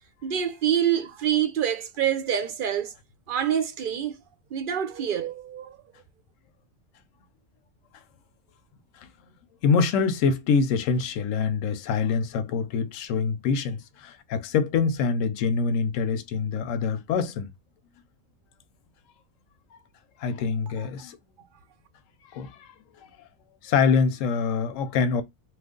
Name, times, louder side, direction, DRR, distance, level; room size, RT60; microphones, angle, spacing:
voice 1, 0.2-2.9 3.3-4.1 4.5-5.8, right 9 dB, 60° right, 0.6 m, -26 dB
voice 2, 9.6-17.5 20.2-21.2 22.3-22.7 23.6-25.2, left 5 dB, 80° left, 0.9 m, -25 dB
2.9 x 2.4 x 3.6 m
omnidirectional pair, 1.3 m